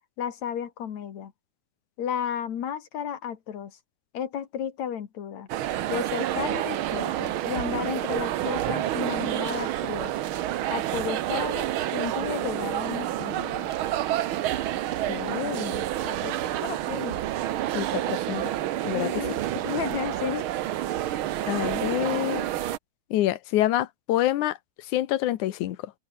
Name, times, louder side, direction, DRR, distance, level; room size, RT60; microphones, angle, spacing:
voice 1, 0.2-1.3 2.0-3.7 4.1-5.5 5.9-10.1 10.7-13.7 16.0-16.4 16.6-17.2 18.9-19.4 19.6-20.5, left 8 dB, 65° left, 3.0 m, -33 dB
sound 1, 5.5-22.8, right 13 dB, 80° right, 1.1 m, -29 dB
voice 2, 15.1-15.9 17.7-18.5 18.8-19.2 21.1-22.5 23.1-24.6 24.9-25.9, left 14 dB, 85° left, 2.5 m, -27 dB
open air
omnidirectional pair, 3.4 m